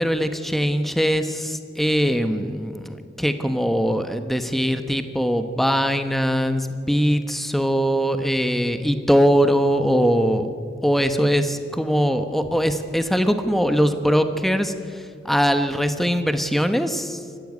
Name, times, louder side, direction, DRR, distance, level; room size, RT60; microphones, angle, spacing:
voice 1, 0.0-10.5 10.8-17.3, equal, ahead, 8 dB, 1.1 m, -21 dB
27.5 x 15.0 x 9.5 m, 2.6 s
head